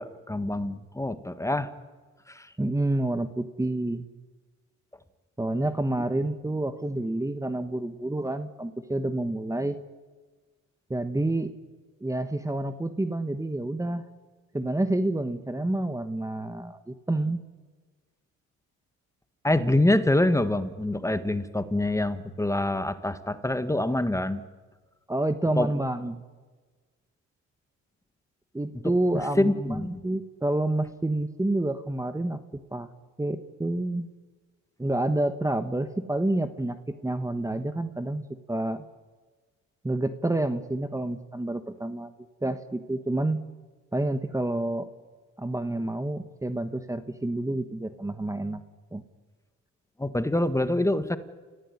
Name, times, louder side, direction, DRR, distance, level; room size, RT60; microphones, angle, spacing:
voice 1, 0.0-1.7 2.3-2.5 19.4-24.4 25.6-25.7 29.1-30.0 50.0-51.2, left 1 dB, 10° left, 11 dB, 1.6 m, -25 dB
voice 2, 2.6-4.1 5.4-9.8 10.9-11.5 12.0-14.1 14.5-17.4 25.1-26.2 28.5-32.9 33.2-34.1 34.8-38.8 39.8-42.1 42.4-43.4 43.9-44.9 45.4-48.6 48.9-49.0, right 1 dB, 10° right, 10 dB, 1.3 m, -28 dB
29.0 x 16.0 x 9.7 m, 1.4 s
cardioid pair, 90°, 30 cm